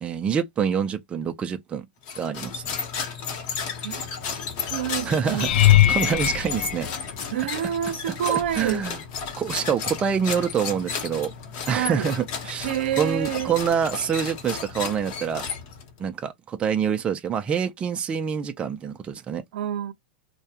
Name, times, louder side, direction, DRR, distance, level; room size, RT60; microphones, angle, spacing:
voice 1, 0.0-1.8 2.2-2.6 5.1-5.5 5.9-6.9 8.3-9.0 9.4-11.3 11.7-12.7 13.0-15.5 16.0-19.4, right 7 dB, 20° right, 0.4 m, -26 dB
sound 1, 2.0-16.0, left 6 dB, 45° left, 0.9 m, -33 dB
voice 2, 4.6-5.8 7.3-8.8 11.7-12.2 12.6-13.6 19.5-19.9, right 11 dB, 70° right, 0.6 m, -28 dB
sound 2, 5.4-7.7 8.4-8.8 9.2-9.3 13.7-13.8, left 13 dB, 65° left, 0.4 m, -21 dB
2.3 x 2.1 x 2.8 m
hypercardioid pair, 130°, 6 cm